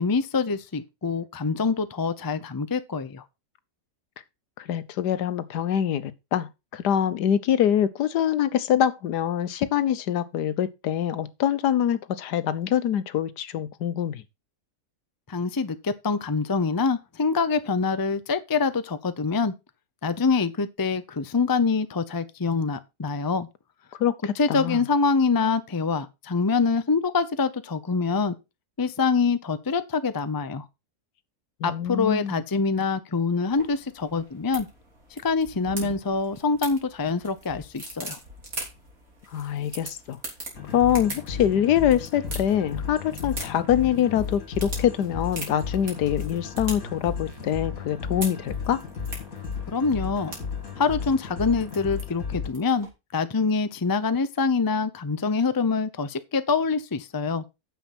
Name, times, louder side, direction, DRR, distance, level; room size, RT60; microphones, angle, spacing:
voice 1, 0.0-3.2 15.3-19.5 20.0-23.5 24.4-28.3 28.8-30.6 31.6-34.7 35.2-38.2 49.7-50.3 50.8-57.4, left 4 dB, 25° left, 0.4 m, -25 dB
voice 2, 4.6-14.2 24.0-24.8 31.6-32.4 39.3-40.2 40.7-48.8, left 10 dB, 80° left, 1.4 m, -24 dB
sound 1, 33.5-52.9, right 2 dB, 60° right, 3.8 m, -42 dB
sound 2, 40.5-52.5, left 6 dB, 55° left, 2.8 m, -34 dB
9.4 x 7.1 x 4.3 m
omnidirectional pair, 1.7 m